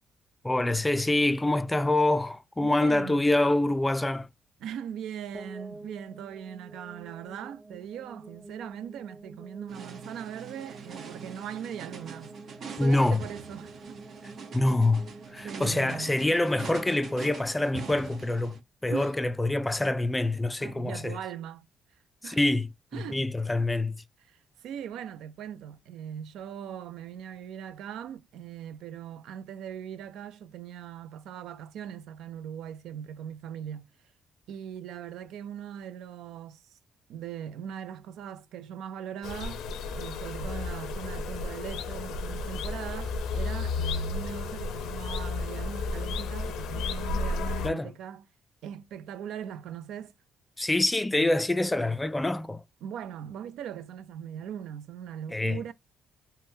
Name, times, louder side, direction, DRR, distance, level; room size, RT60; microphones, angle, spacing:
voice 1, 0.4-4.3 12.8-13.2 14.5-21.2 22.2-24.0 47.6-47.9 50.6-52.6 55.3-55.6, left 2 dB, 15° left, 0.3 m, -26 dB
voice 2, 2.6-3.3 4.6-12.3 12.7-14.0 15.4-16.2 18.9-19.1 20.6-21.7 22.2-22.4 22.9-23.3 24.2-33.9 34.5-36.8 37.1-39.7 39.9-48.3 48.6-50.1 52.8-55.7, right 9 dB, 80° right, 0.3 m, -40 dB
sound 1, 5.3-18.2, right 2 dB, 10° right, 0.7 m, -48 dB
sound 2, 9.7-18.6, right 5 dB, 60° right, 0.7 m, -44 dB
sound 3, 39.2-47.7, left 3 dB, 85° left, 0.5 m, -32 dB
3.5 x 2.1 x 2.6 m
cardioid pair, 85°, 0 cm